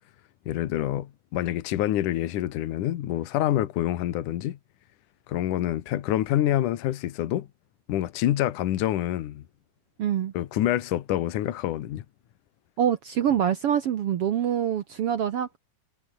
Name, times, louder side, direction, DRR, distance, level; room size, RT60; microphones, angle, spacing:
voice 1, 0.5-4.6 5.3-7.5 7.9-9.4 10.3-12.1, left 13 dB, 70° left, 2.8 m, -27 dB
voice 2, 10.0-10.3 12.8-15.6, right 9 dB, 65° right, 1.5 m, -25 dB
omnidirectional pair, 3.9 m